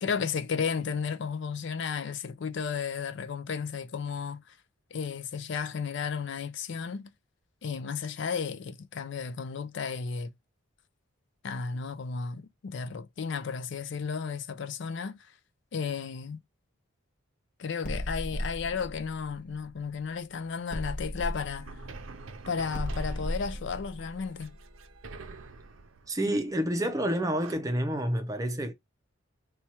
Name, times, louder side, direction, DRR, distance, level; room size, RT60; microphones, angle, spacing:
voice 1, 0.0-4.6 4.9-7.1 7.6-10.3 11.4-15.3 15.7-16.4 17.6-21.7 22.5-24.6, left 6 dB, 60° left, 0.4 m, -33 dB
sound 1, 17.8-20.2 20.7-25.4, equal, 40° left, 0.9 m, -37 dB
sound 2, 21.6-27.6, right 3 dB, 75° right, 0.6 m, -47 dB
voice 2, 26.1-28.7, equal, 15° right, 0.6 m, -29 dB
4.3 x 2.3 x 2.9 m
head